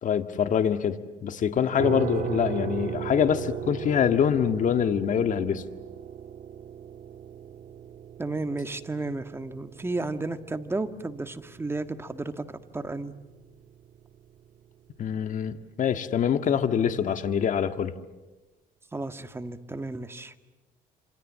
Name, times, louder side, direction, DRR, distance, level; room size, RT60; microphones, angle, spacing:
voice 1, 0.0-5.6 15.0-18.0, left 8 dB, 50° left, 9 dB, 1.8 m, -25 dB
sound 1, 1.8-14.6, right 9 dB, 50° right, 2.2 m, -38 dB
voice 2, 8.2-12.5 12.7-13.1 18.9-20.3, right 2 dB, 15° right, 9 dB, 1.7 m, -33 dB
28.0 x 26.5 x 7.6 m, 1.1 s
cardioid pair, 110°, 17 cm